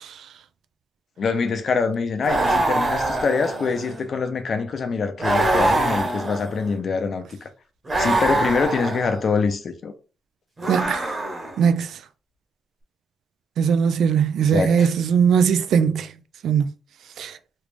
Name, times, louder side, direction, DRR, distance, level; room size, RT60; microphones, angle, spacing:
voice 1, 1.2-7.5 8.0-9.9 14.4-14.9, left 5 dB, 50° left, 0.6 m, -24 dB
sound 1, 2.2-4.0 5.2-6.8 7.9-9.2 10.6-11.7, right 2 dB, 30° right, 1.2 m, -24 dB
voice 2, 10.7-11.0 11.6-12.0 13.6-16.1 16.4-16.7 17.2-17.3, right 7 dB, 85° right, 0.3 m, -19 dB
3.2 x 2.5 x 3.3 m
cardioid pair, 125°, 0 cm